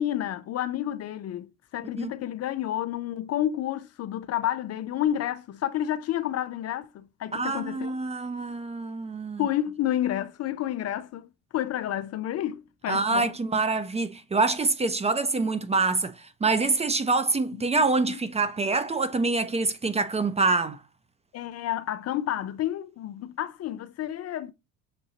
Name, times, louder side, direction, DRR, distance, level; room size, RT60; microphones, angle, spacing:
voice 1, 0.0-8.0 9.4-13.3 17.5-17.6 21.3-24.5, left 12 dB, 45° left, 0.5 m, -30 dB
voice 2, 7.3-9.4 12.9-20.8, right 3 dB, 20° right, 0.5 m, -26 dB
6.6 x 2.7 x 2.7 m
supercardioid pair, 85°, 36 cm